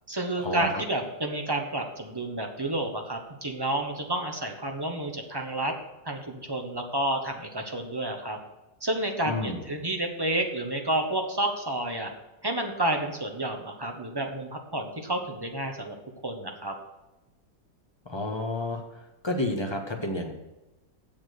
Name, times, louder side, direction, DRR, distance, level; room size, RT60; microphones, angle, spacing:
voice 1, 0.1-5.7 6.0-8.4 8.8-12.1 12.4-15.9 16.2-16.7, right 1 dB, 15° right, 3 dB, 1.0 m, -30 dB
voice 2, 9.2-9.6 18.0-18.8 19.2-20.3, left 2 dB, 15° left, 2 dB, 1.3 m, -30 dB
7.4 x 7.2 x 8.1 m, 1.0 s
omnidirectional pair, 1.9 m